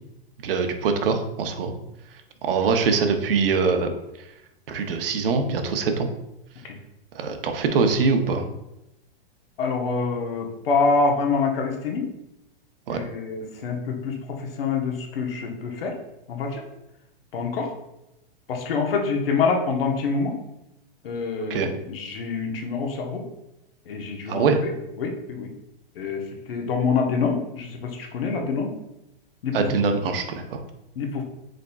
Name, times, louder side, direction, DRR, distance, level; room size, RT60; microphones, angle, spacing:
voice 1, 0.4-1.7 2.4-3.9 4.7-6.1 7.1-8.4 12.9-13.0 21.5-21.7 24.3-24.6 29.5-30.6, right 5 dB, 70° right, 6 dB, 0.8 m, -23 dB
voice 2, 9.6-12.1 12.9-16.0 16.3-16.6 17.3-17.7 18.5-20.3 21.0-23.2 23.9-24.7 25.0-25.5 26.0-26.2 26.5-28.7 29.4-29.6 31.0-31.2, left 4 dB, 75° left, 2 dB, 1.1 m, -26 dB
5.0 x 4.2 x 2.3 m, 0.89 s
supercardioid pair, 170°, 29 cm